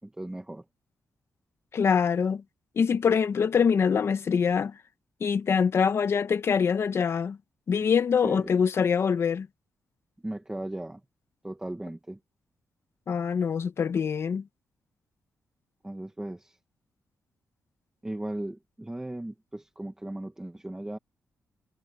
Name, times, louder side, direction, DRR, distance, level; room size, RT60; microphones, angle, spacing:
voice 1, 0.0-0.6 8.2-8.5 10.2-11.0 11.4-12.2 15.8-16.6 18.0-21.0, right 1 dB, 10° right, 1.7 m, -37 dB
voice 2, 1.7-2.4 2.8-4.8 5.2-7.4 7.7-9.5 13.1-14.4, left 6 dB, 55° left, 1.3 m, -24 dB
cardioid pair, 100°, 5 cm